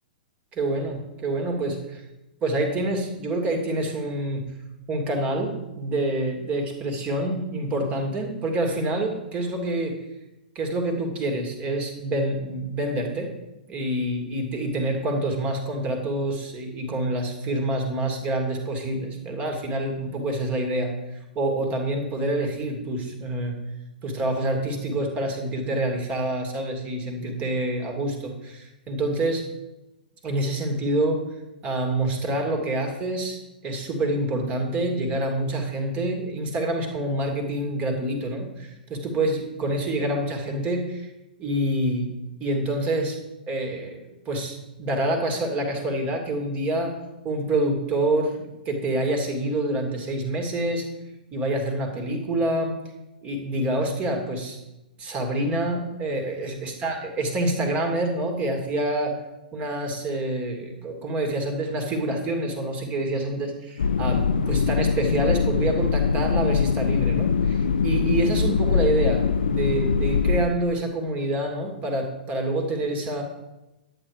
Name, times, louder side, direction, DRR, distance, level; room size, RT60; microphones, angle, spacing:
voice 1, 0.5-2.0 2.4-4.4 4.9-10.0 10.5-13.3 13.7-23.6 24.0-29.4 30.2-31.2 31.6-41.1 41.4-42.1 42.4-43.2 43.5-44.0 44.3-46.9 47.2-50.8 51.3-52.8 53.2-54.6 55.0-59.2 59.5-73.2, right 1 dB, 25° right, 3 dB, 2.5 m, -27 dB
sound 1, 63.8-70.4, left 6 dB, 65° left, 0.6 m, -22 dB
10.5 x 9.2 x 5.0 m, 0.98 s
figure-of-eight pair, 110°, 5 cm